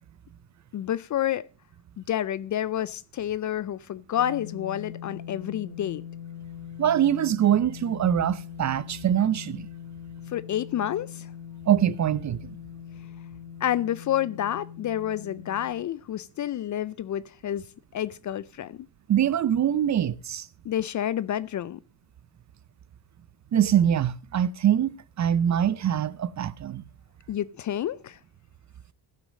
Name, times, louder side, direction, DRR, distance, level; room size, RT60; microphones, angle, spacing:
voice 1, 0.7-1.4 2.0-6.0 10.3-11.3 13.6-17.6 17.9-18.9 20.6-21.8 27.3-28.2, left 11 dB, 40° left, 0.5 m, -29 dB
sound 1, 4.2-15.7, left 9 dB, 55° left, 2.6 m, -42 dB
voice 2, 6.8-9.7 11.7-12.4 19.1-20.5 23.5-26.8, right 10 dB, 35° right, 0.6 m, -23 dB
15.0 x 6.1 x 5.2 m
supercardioid pair, 90°, 50 cm